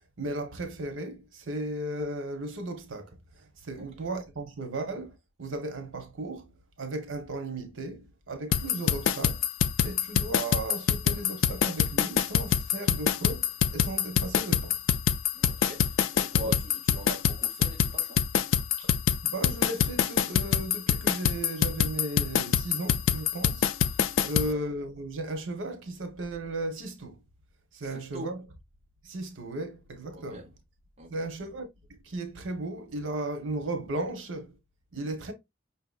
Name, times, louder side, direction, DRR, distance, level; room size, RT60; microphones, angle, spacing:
voice 1, 0.2-6.5 6.8-9.4 9.8-14.8 16.4-16.5 18.8-18.9 19.2-23.7 24.2-27.2 27.7-28.4 29.0-30.5 31.1-31.7 32.0-34.6 34.9-35.3, right 2 dB, 90° right, 1.0 m, -35 dB
voice 2, 3.8-4.1 15.3-18.2 24.2-24.6 27.8-28.3 30.1-30.5 31.0-31.3, equal, 30° right, 0.7 m, -42 dB
sound 1, 8.5-24.5, left 8 dB, 85° left, 0.4 m, -25 dB
5.5 x 2.8 x 2.3 m
head